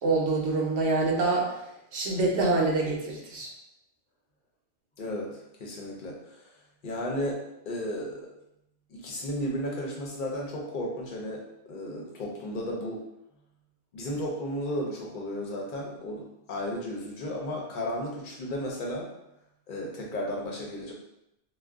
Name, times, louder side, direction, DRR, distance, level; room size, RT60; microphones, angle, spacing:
voice 1, 0.0-1.6 1.9-3.5, right 3 dB, 65° right, -1 dB, 0.9 m, -26 dB
voice 2, 5.0-6.5 6.8-8.3 8.9-13.0 13.9-19.1 19.7-20.9, equal, 50° left, -1 dB, 0.7 m, -34 dB
2.4 x 2.2 x 3.5 m, 0.83 s
omnidirectional pair, 1.2 m